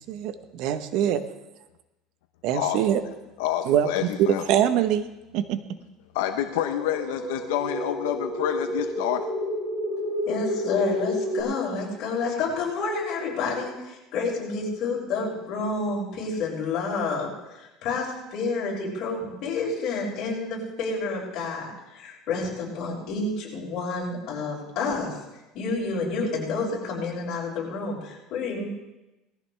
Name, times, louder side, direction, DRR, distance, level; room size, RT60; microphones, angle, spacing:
voice 1, 0.0-1.2 2.4-3.0 3.7-3.9 4.2-5.0 5.3-5.6, right 10 dB, 60° right, 11 dB, 0.9 m, -23 dB
voice 2, 3.4-4.4 6.1-9.3, left 11 dB, 90° left, 6 dB, 0.9 m, -28 dB
sound 1, 6.4-11.4, equal, 5° right, 5.4 m, -30 dB
voice 3, 10.3-25.2 25.5-28.8, left 3 dB, 50° left, -3 dB, 5.7 m, -29 dB
19.0 x 14.5 x 3.3 m, 0.99 s
cardioid pair, 150°, 0 cm